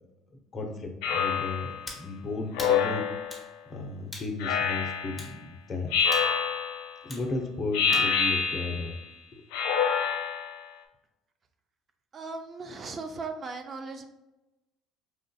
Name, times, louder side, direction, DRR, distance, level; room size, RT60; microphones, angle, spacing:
voice 1, 0.5-3.1 3.7-5.9 7.0-8.9 9.3-9.4, left 3 dB, 40° left, 2 dB, 0.8 m, -34 dB
Speech synthesizer, 1.0-1.8 2.5-3.4 4.4-5.2 5.9-6.9 7.7-9.0 9.5-10.6, left 6 dB, 80° left, 0.5 m, -27 dB
sound 1, 1.9-2.1 2.6-2.8 3.3-3.5 4.1-4.3 5.2-5.4 6.1-6.3 7.1-7.3 7.9-8.1, left 2 dB, 20° left, 1.2 m, -41 dB
voice 2, 12.1-14.0, right 4 dB, 40° right, 5 dB, 0.5 m, -37 dB
4.9 x 2.5 x 2.3 m, 0.98 s
supercardioid pair, 80°, 0 cm